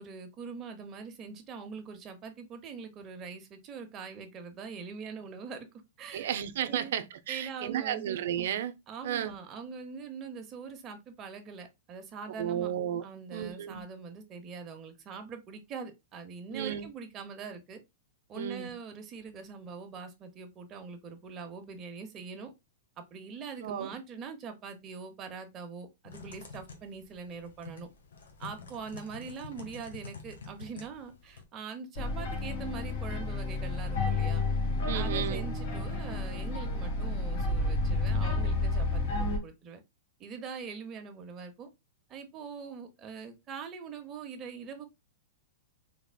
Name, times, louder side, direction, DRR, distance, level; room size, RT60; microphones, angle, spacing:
voice 1, 0.0-5.7 6.0-6.4 6.7-6.9 7.3-8.1 8.9-12.7 13.0-17.8 18.3-22.5 23.0-27.9 28.4-34.4 34.9-39.8 40.2-41.7 42.1-44.9, right 5 dB, 25° right, 0.8 m, -43 dB
voice 2, 6.1-8.7 9.0-9.3 12.4-13.0 13.3-13.8 16.5-16.9 18.3-18.7 23.6-23.9 34.9-35.5, right 10 dB, 65° right, 0.5 m, -33 dB
Typing, 26.1-31.4, left 4 dB, 90° left, 1.2 m, -48 dB
sound 1, 31.9-39.4, left 2 dB, 65° left, 1.6 m, -30 dB
3.9 x 3.4 x 2.2 m
hypercardioid pair, 145°, 0 cm